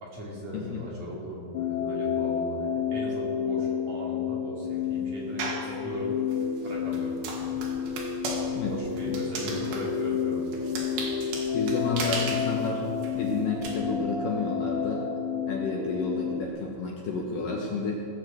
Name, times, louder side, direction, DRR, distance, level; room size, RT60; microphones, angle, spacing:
voice 1, 0.0-6.2 6.6-7.6 8.5-10.6, equal, 45° right, -5 dB, 3.3 m, -39 dB
sound 1, 1.5-16.5, left 7 dB, 85° left, 1.7 m, -30 dB
sound 2, 5.4-5.7 6.3-13.7, right 4 dB, 80° right, 4.0 m, -36 dB
voice 2, 11.5-12.8 13.1-15.1 15.5-18.0, left 4 dB, 65° left, -1 dB, 2.4 m, -30 dB
17.5 x 6.4 x 7.6 m, 2.4 s
omnidirectional pair, 5.0 m